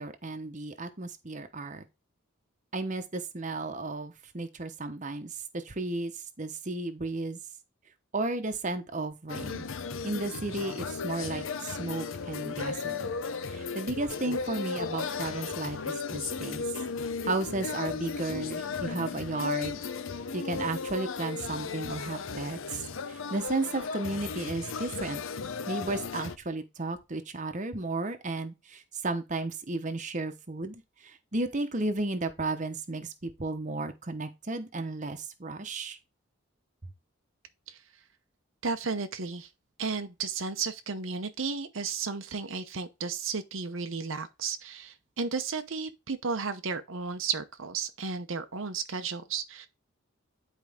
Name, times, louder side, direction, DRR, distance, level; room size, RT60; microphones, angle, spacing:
voice 1, 0.0-1.9 2.7-6.1 6.4-7.4 8.1-9.7 10.0-13.1 13.5-16.6 17.2-19.8 20.3-22.8 23.1-25.2 25.7-36.0, right 2 dB, 35° right, 1.0 m, -34 dB
sound 1, 9.3-26.4, left 5 dB, 75° left, 0.7 m, -35 dB
voice 2, 38.6-39.5 39.8-49.7, right 5 dB, 75° right, 0.8 m, -33 dB
10.5 x 4.6 x 3.6 m
head